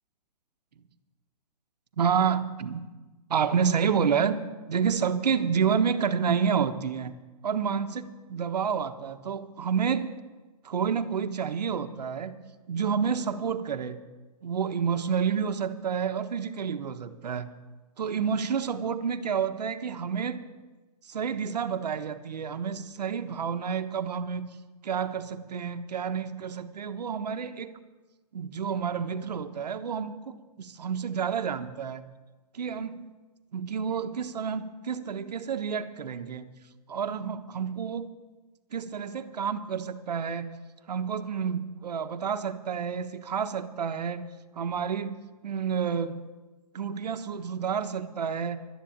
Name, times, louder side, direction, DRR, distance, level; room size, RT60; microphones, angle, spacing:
voice 1, 2.0-2.9 3.3-4.4 4.7-7.1 7.4-10.1 10.6-12.4 12.7-14.0 14.4-17.5 18.0-20.4 21.0-24.5 24.8-27.7 28.3-32.1 32.5-33.0 33.5-36.5 36.9-38.1 38.7-40.5 40.9-45.2 45.4-46.2 46.7-48.6, right 7 dB, 80° right, 9 dB, 1.3 m, -29 dB
12.0 x 10.5 x 8.7 m, 1.2 s
hypercardioid pair, 170°, 21 cm